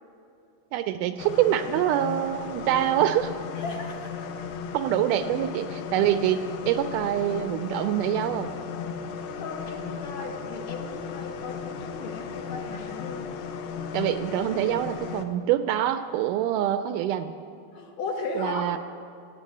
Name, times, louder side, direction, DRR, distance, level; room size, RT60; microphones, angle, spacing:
voice 1, 0.7-3.3 4.7-6.4 6.7-8.5 13.9-17.3 18.4-18.8, right 11 dB, 80° right, 10 dB, 1.9 m, -25 dB
sound 1, 1.2-15.2, left 6 dB, 90° left, 2.5 m, -36 dB
voice 2, 3.5-4.4 9.3-13.3 17.7-18.8, left 3 dB, 65° left, 2 dB, 2.1 m, -36 dB
16.5 x 8.3 x 8.4 m, 2.6 s
omnidirectional pair, 3.9 m